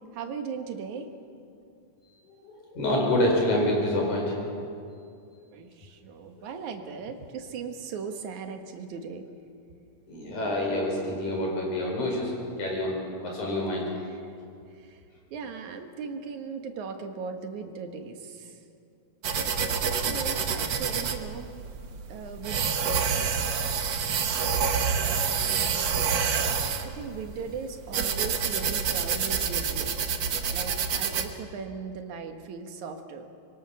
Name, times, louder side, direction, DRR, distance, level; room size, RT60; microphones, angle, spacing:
voice 1, 0.1-1.1 5.5-9.3 14.1-14.3 14.7-15.0 15.3-18.6 20.0-21.5 22.1-22.6 26.8-30.2 30.5-33.3, right 5 dB, 75° right, 6 dB, 2.8 m, -38 dB
voice 2, 2.4-4.4 10.1-12.3 12.6-13.9 26.5-26.7, left 1 dB, 75° left, -1 dB, 6.4 m, -27 dB
sound 1, 19.2-31.3, right 6 dB, 55° right, 1.4 m, -27 dB
25.5 x 23.0 x 6.3 m, 2.5 s
omnidirectional pair, 3.5 m